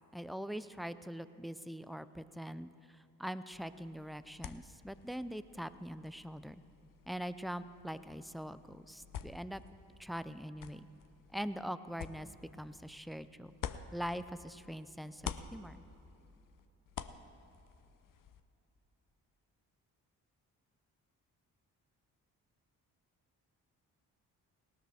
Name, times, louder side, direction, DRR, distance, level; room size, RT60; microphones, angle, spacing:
voice 1, 0.1-2.7 3.2-6.6 7.1-9.6 10.0-10.9 11.3-12.3 12.6-13.5 13.9-15.8, equal, ahead, 13 dB, 0.4 m, -42 dB
sound 1, 3.5-14.7 15.0-18.4, left 8 dB, 50° left, 0.7 m, -49 dB
18.0 x 13.0 x 3.5 m, 2.9 s
hypercardioid pair, 45°, 44 cm